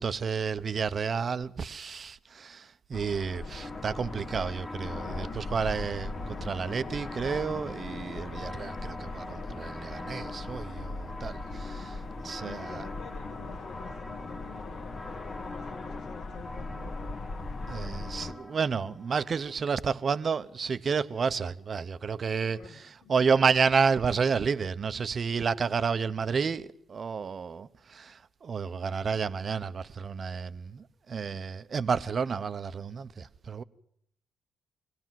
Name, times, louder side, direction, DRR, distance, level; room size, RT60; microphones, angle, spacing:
voice 1, 0.0-11.9 12.2-12.8 17.7-22.6 23.1-33.6, right 5 dB, 45° right, 0.8 m, -30 dB
sound 1, 2.9-18.3, left 3 dB, 50° left, 1.6 m, -39 dB
sound 2, 3.6-19.5, left 2 dB, 15° left, 1.0 m, -45 dB
voice 2, 11.4-14.7 15.0-17.0 22.5-23.1, left 5 dB, 80° left, 1.7 m, -49 dB
23.5 x 17.5 x 7.6 m
cardioid pair, 90°, 0 cm